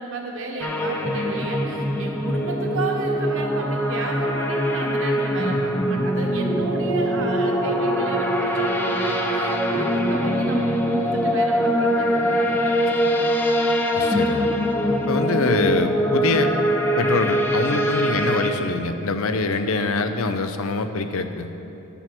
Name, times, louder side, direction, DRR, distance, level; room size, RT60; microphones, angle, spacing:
voice 1, 0.0-13.3, right 2 dB, 65° right, 1 dB, 1.4 m, -32 dB
sound 1, 0.6-18.5, equal, 10° left, 0.7 m, -23 dB
voice 2, 13.9-14.5 15.1-16.5 17.0-21.5, left 3 dB, 85° left, 8 dB, 0.7 m, -24 dB
10.5 x 7.0 x 6.1 m, 2.9 s
head